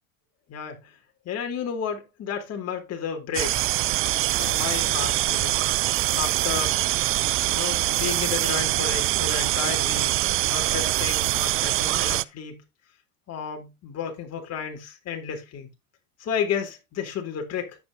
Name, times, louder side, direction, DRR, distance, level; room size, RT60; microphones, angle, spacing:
voice 1, 0.5-0.9 1.3-3.6 4.2-5.6 6.1-6.8 7.4-10.2 10.5-12.6 13.3-15.7 16.2-17.8, left 7 dB, 40° left, 3.7 m, -32 dB
sound 1, 3.3-12.2, right 16 dB, 35° right, 0.5 m, -24 dB
10.5 x 8.9 x 2.8 m
hypercardioid pair, 95°, 39 cm